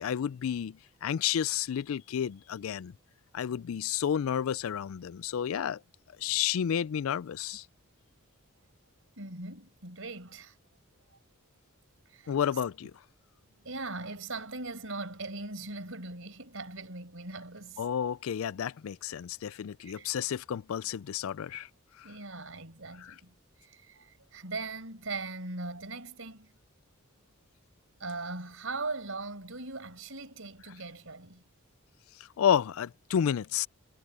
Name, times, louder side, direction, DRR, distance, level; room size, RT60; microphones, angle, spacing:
voice 1, 0.0-2.9 3.3-5.8 6.2-7.6 12.3-12.9 17.8-21.7 22.0-22.1 23.0-23.1 32.4-33.7, left 8 dB, 70° left, 0.4 m, -31 dB
voice 2, 9.2-10.7 12.1-12.4 13.5-17.9 19.8-20.1 22.0-23.3 23.6-26.5 28.0-31.4, right 3 dB, 65° right, 5.3 m, -40 dB
head